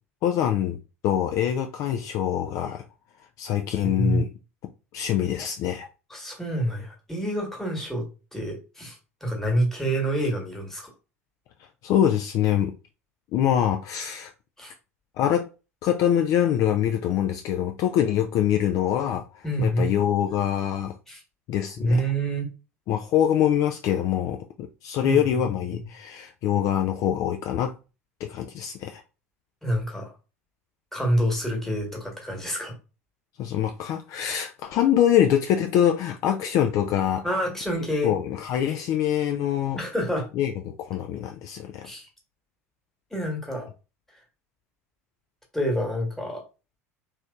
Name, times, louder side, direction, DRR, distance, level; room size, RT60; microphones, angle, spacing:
voice 1, 0.2-2.8 3.4-4.3 4.9-5.9 11.8-12.8 13.3-14.3 15.2-15.4 15.8-21.0 21.5-22.0 22.9-27.8 28.2-29.0 33.4-37.3 38.0-39.8 40.4-41.9, left 10 dB, 45° left, 0.3 m, -24 dB
voice 2, 3.8-4.2 6.1-8.1 8.3-9.0 9.2-10.8 14.6-14.7 19.4-19.9 21.1-21.2 21.8-22.5 25.0-25.4 29.6-30.1 30.9-32.7 37.2-38.1 39.8-40.3 41.8-42.1 43.1-43.7 45.5-46.4, right 1 dB, 5° left, 1.3 m, -27 dB
3.2 x 3.0 x 2.3 m
figure-of-eight pair, 75°, 8 cm